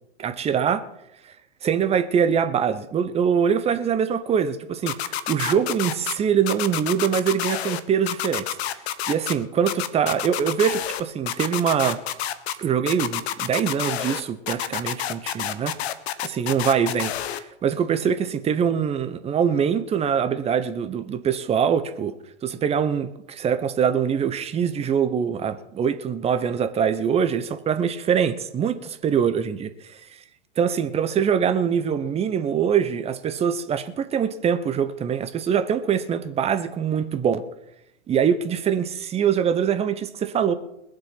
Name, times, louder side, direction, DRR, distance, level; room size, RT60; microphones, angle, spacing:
voice 1, 0.2-0.8 1.6-4.9 5.3-8.5 9.1-12.0 12.6-15.7 16.2-22.1 22.4-30.0 30.6-37.4 38.1-40.5, right 7 dB, 15° right, 0.9 m, -23 dB
sound 1, 4.9-6.1 6.5-7.8 8.1-9.3 9.7-11.0 11.3-12.5 12.9-14.2 14.5-17.4, left 12 dB, 55° left, 1.3 m, -28 dB
21.0 x 7.7 x 5.9 m
hypercardioid pair, 115°, 39 cm